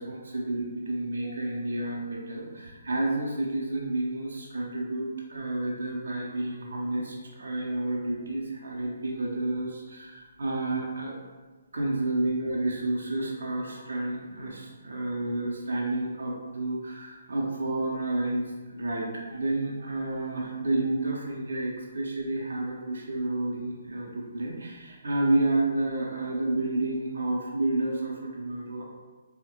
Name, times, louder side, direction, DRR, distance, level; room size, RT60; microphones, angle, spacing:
voice 1, 0.0-11.2 11.7-28.9, right 2 dB, 60° right, -2 dB, 0.5 m, -30 dB
3.8 x 2.1 x 2.9 m, 1.3 s
figure-of-eight pair, 135°, 0 cm